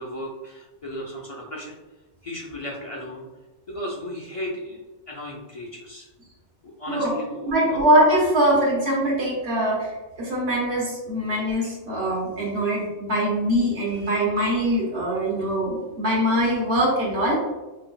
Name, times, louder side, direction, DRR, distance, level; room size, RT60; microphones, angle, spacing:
voice 1, 0.0-1.7 2.2-3.3 3.7-4.8 5.1-6.1 6.6-7.8, left 1 dB, 45° left, -4 dB, 0.5 m, -35 dB
voice 2, 7.5-9.9 10.2-17.4, right 1 dB, 65° right, -6 dB, 1.5 m, -22 dB
5.3 x 2.6 x 2.3 m, 1.1 s
omnidirectional pair, 1.2 m